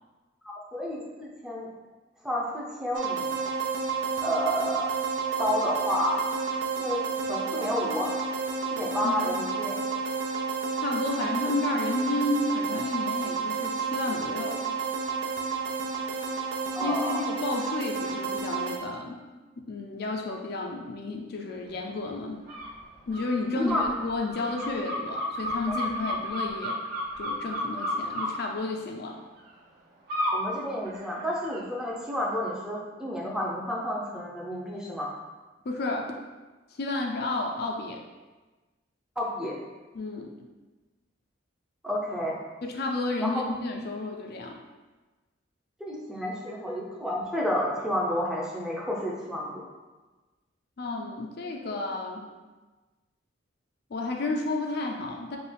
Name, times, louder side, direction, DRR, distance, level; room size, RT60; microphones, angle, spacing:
voice 1, 0.4-1.7 2.2-3.3 4.2-4.9 5.4-6.2 6.8-7.0 7.3-8.1 8.7-9.8 11.4-11.5 16.7-17.3 23.5-23.8 30.3-35.1 39.2-39.6 41.8-42.4 43.2-43.3 45.8-49.6, equal, 5° right, -4 dB, 0.6 m, -30 dB
sound 1, 2.9-18.8, right 5 dB, 70° right, 0.5 m, -30 dB
voice 2, 10.8-14.6 16.8-19.2 19.6-22.4 23.1-26.8 27.2-29.2 35.7-36.1 36.8-38.0 39.9-40.3 42.6-44.6 50.8-52.3 53.9-55.4, left 2 dB, 55° left, 1 dB, 0.4 m, -31 dB
sound 2, 22.5-22.7 23.1-28.3 30.1-30.4 30.8-31.6, equal, 50° right, 1.3 m, -32 dB
5.2 x 2.4 x 3.3 m, 1.2 s
head